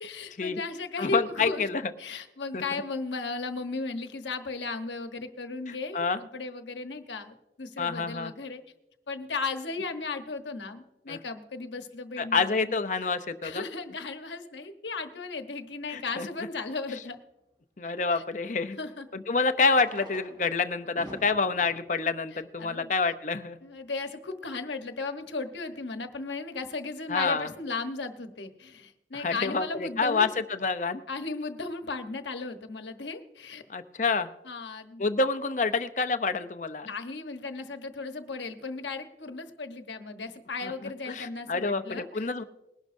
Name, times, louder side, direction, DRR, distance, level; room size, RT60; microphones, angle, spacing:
voice 1, 0.0-1.7 2.0-8.6 9.1-12.7 13.4-17.2 18.1-18.2 18.8-19.1 22.3-22.9 23.6-30.3 31.1-33.6 34.4-35.0 36.8-42.3, left 3 dB, 85° left, 7 dB, 1.1 m, -36 dB
voice 2, 1.0-2.2 2.5-2.8 5.7-6.2 7.8-8.3 11.1-11.2 12.2-13.6 15.9-16.3 17.8-18.8 19.1-23.6 27.1-27.5 29.1-31.0 33.7-34.3 35.0-36.9 40.6-40.7 41.1-42.4, left 4 dB, 45° left, 10 dB, 0.6 m, -28 dB
Fireworks, 15.9-16.0 18.3-18.4 19.5-23.2 24.0-24.1 24.3-24.4 24.6-24.7 25.2-25.4, equal, 25° right, 4.0 m, -49 dB
20.5 x 11.5 x 2.6 m, 0.92 s
head